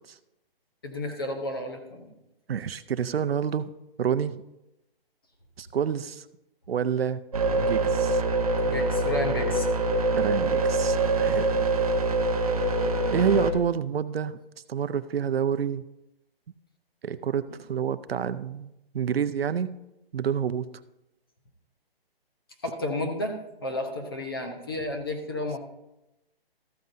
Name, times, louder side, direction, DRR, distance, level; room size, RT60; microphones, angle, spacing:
voice 1, 0.8-2.1 8.6-9.7 22.6-25.6, left 1 dB, 25° left, 3 dB, 0.8 m, -32 dB
voice 2, 2.5-3.7 4.0-4.4 5.6-6.3 6.7-7.3 7.5-8.2 10.1-11.6 13.1-14.4 14.7-15.8 17.0-19.7 20.1-20.7, right 8 dB, 75° right, 13 dB, 0.6 m, -28 dB
sound 1, 7.3-13.5, right 2 dB, 40° right, 0.8 m, -24 dB
13.5 x 9.2 x 2.6 m, 0.90 s
hypercardioid pair, 180°, 30 cm